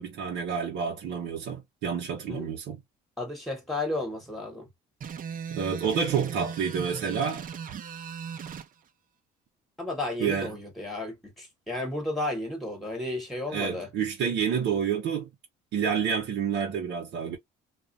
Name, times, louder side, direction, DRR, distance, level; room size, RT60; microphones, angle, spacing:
voice 1, 0.0-2.8 5.5-7.5 10.2-10.6 13.5-15.3 15.7-17.4, right 7 dB, 70° right, 0.8 m, -29 dB
voice 2, 3.2-4.7 9.8-13.9, left 2 dB, ahead, 1.1 m, -33 dB
sound 1, 5.0-8.7, right 7 dB, 40° right, 0.6 m, -38 dB
2.4 x 2.1 x 2.5 m
supercardioid pair, 85°, 21 cm